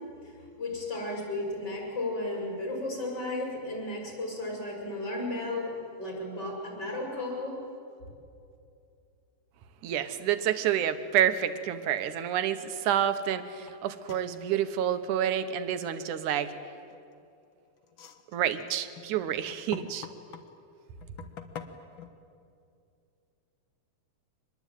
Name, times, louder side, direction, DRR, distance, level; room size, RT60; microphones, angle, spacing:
voice 1, 0.0-7.6, left 2 dB, 30° left, 0 dB, 6.8 m, -34 dB
voice 2, 9.8-16.5 18.3-20.1, right 10 dB, 80° right, 11 dB, 2.5 m, -28 dB
sound 1, 13.7-13.8 14.1-14.4 16.8-17.2 17.8-20.5 21.0-22.1, left 8 dB, 50° left, 1.7 m, -44 dB
25.5 x 21.0 x 9.2 m, 2.5 s
omnidirectional pair, 3.6 m